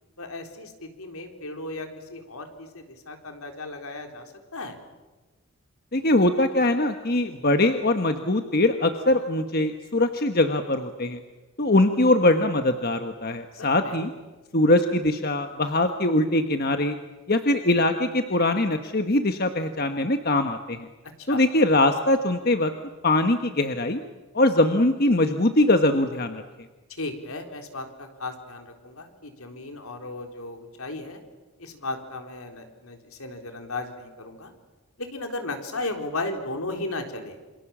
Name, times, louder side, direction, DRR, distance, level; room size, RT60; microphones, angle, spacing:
voice 1, 0.2-4.8 13.6-14.0 21.2-21.4 26.9-31.2 31.6-34.5 35.0-37.4, left 2 dB, 75° left, 5 dB, 3.8 m, -35 dB
voice 2, 5.9-11.2 11.6-14.1 14.5-17.0 17.3-20.9 21.3-22.7 23.0-24.0 24.3-26.4, left 1 dB, 45° left, 7 dB, 1.3 m, -22 dB
28.0 x 27.0 x 7.4 m, 1.2 s
head